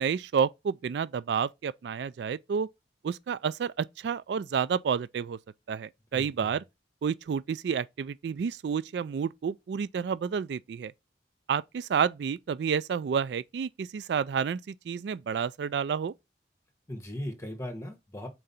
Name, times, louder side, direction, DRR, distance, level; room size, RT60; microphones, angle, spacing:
voice 1, 0.0-2.7 3.0-5.4 5.7-6.6 7.0-10.9 11.5-16.1, right 7 dB, 65° right, 0.3 m, -30 dB
voice 2, 6.1-6.5 16.9-18.3, left 1 dB, 15° left, 1.5 m, -38 dB
4.6 x 3.8 x 5.5 m
head